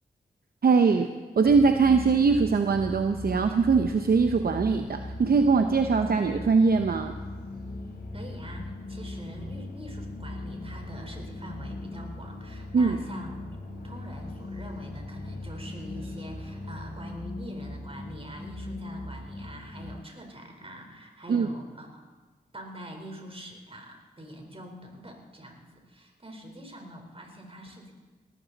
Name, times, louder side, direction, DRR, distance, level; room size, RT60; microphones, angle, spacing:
voice 1, 0.6-1.1 1.4-7.2 12.7-13.0 21.3-21.5, right 4 dB, 65° right, 7 dB, 0.8 m, -22 dB
sound 1, 1.4-19.9, left 2 dB, 70° left, 3.5 m, -39 dB
voice 2, 8.1-13.4 13.8-22.0 22.5-27.9, equal, 35° right, 3 dB, 4.1 m, -44 dB
18.5 x 14.0 x 4.1 m, 1.4 s
cardioid pair, 45°, 17 cm